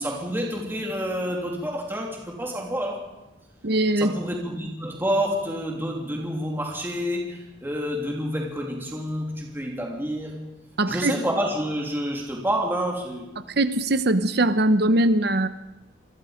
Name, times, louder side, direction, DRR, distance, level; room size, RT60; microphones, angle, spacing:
voice 1, 0.0-3.1 4.0-10.4 10.9-13.3, equal, 10° right, -1 dB, 3.2 m, -28 dB
voice 2, 3.6-4.1 10.8-11.1 13.6-15.5, right 1 dB, 55° right, 11 dB, 1.0 m, -21 dB
28.0 x 20.5 x 5.2 m, 0.95 s
head